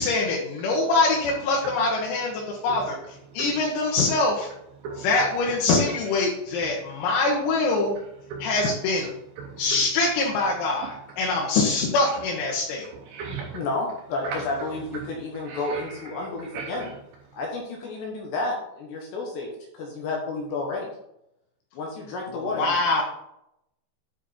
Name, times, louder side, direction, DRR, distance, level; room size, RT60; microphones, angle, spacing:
voice 1, 0.0-3.0 3.3-4.5 5.0-8.0 8.4-9.1 9.6-12.9 22.3-23.0, left 3 dB, 85° left, -2 dB, 4.0 m, -24 dB
voice 2, 2.3-2.9 3.3-3.6 4.8-5.8 6.1-6.3 6.5-6.8 8.0-8.7 9.0-9.9 10.8-11.2 12.1-12.2 12.5-12.6 12.8-13.7 14.2-17.0 17.3-17.4, right 5 dB, 80° right, 1 dB, 2.4 m, -39 dB
voice 3, 13.3-16.9 17.3-20.9 21.7-22.7, left 3 dB, 70° left, -1 dB, 3.0 m, -31 dB
9.8 x 5.0 x 4.3 m, 0.81 s
omnidirectional pair, 5.9 m